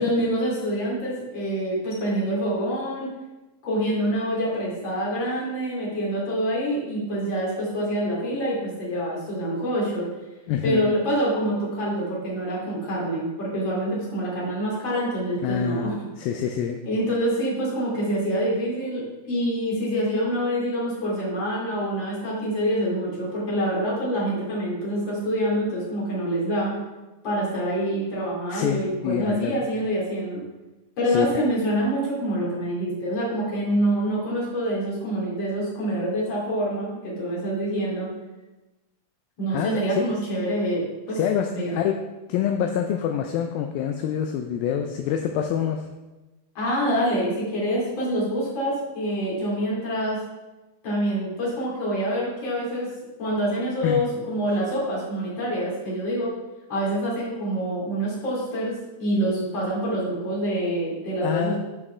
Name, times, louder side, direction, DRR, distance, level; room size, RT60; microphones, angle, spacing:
voice 1, 0.0-3.1 3.6-10.1 10.6-15.9 16.8-26.7 27.2-30.4 31.0-38.1 39.4-41.2 41.5-41.8 46.5-50.2 50.8-52.9 53.2-56.3 56.7-61.6, equal, 30° left, -6 dB, 3.1 m, -26 dB
voice 2, 10.5-10.9 15.4-16.8 28.5-29.7 31.1-31.4 39.5-40.1 41.1-42.0 42.3-45.8 53.8-54.0 61.2-61.6, left 9 dB, 80° left, 4 dB, 2.2 m, -26 dB
11.5 x 6.2 x 3.3 m, 1.1 s
omnidirectional pair, 4.7 m